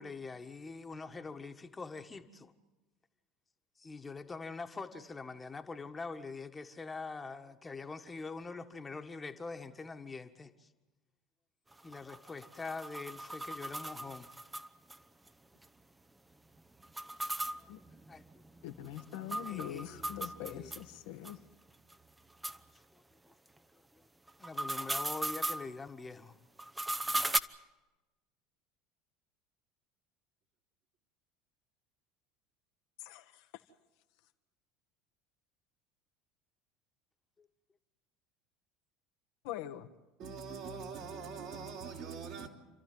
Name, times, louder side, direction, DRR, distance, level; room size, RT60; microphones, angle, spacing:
voice 1, 0.0-2.5 3.8-10.7 11.8-14.3 17.6-17.7 18.1-18.2 19.4-20.1 20.4-20.7 22.5-22.6 22.9-23.0 23.9-24.1 24.4-26.3 37.4-37.5, left 4 dB, 20° left, 1.6 m, -44 dB
sound 1, 11.7-15.0 15.3-15.4 15.6-15.7 16.8-20.9 21.3-21.4 21.9-22.0 22.4-22.6 24.3-25.7 26.6-27.4, right 1 dB, 10° right, 0.9 m, -37 dB
voice 2, 18.6-21.4 33.0-33.5 39.4-39.9, left 12 dB, 65° left, 1.3 m, -43 dB
voice 3, 40.2-42.5, right 5 dB, 55° right, 3.7 m, -43 dB
29.5 x 13.0 x 9.3 m
hypercardioid pair, 70°, 0 cm